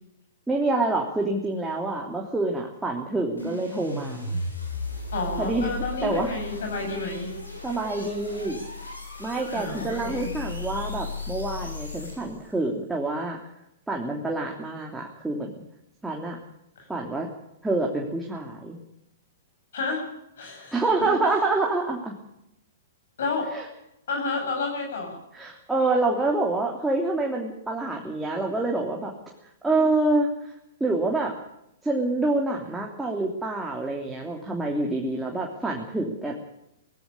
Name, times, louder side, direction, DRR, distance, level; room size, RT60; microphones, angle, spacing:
voice 1, 0.5-4.4 5.4-6.3 7.6-8.6 9.2-13.4 13.9-15.5 16.0-16.4 16.9-17.3 17.6-18.8 20.7-22.1 23.5-23.7 25.3-29.1 29.6-31.3 31.8-36.3, right 2 dB, 5° right, -1 dB, 2.9 m, -27 dB
sound 1, 3.4-12.5, left 3 dB, 90° left, 7.6 m, -35 dB
voice 2, 5.1-7.3 9.5-10.3 16.8-16.9 19.7-20.0 20.4-21.1 23.2-23.5 24.1-25.2, left 3 dB, 65° left, 3 dB, 7.6 m, -30 dB
19.0 x 15.0 x 9.9 m, 0.83 s
figure-of-eight pair, 110°, 0 cm